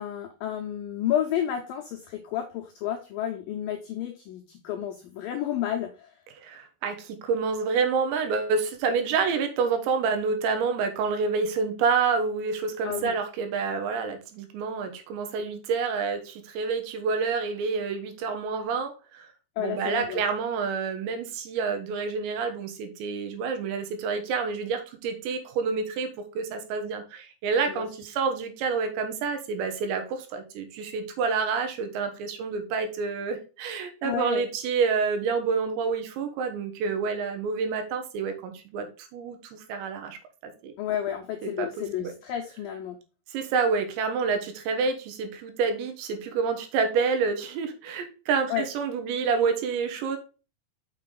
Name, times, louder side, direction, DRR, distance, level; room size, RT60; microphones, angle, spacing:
voice 1, 0.0-6.2 12.8-13.2 19.6-20.2 27.7-27.9 34.0-34.4 40.8-43.0 48.5-48.7, left 10 dB, 85° left, 2 dB, 2.0 m, -31 dB
voice 2, 6.4-19.3 19.6-26.1 26.4-38.9 39.1-40.2 40.6-40.7 41.4-41.7 42.0-42.1 43.3-50.2, right 5 dB, 80° right, 6 dB, 3.4 m, -28 dB
6.6 x 5.8 x 3.8 m, 0.33 s
omnidirectional pair, 5.1 m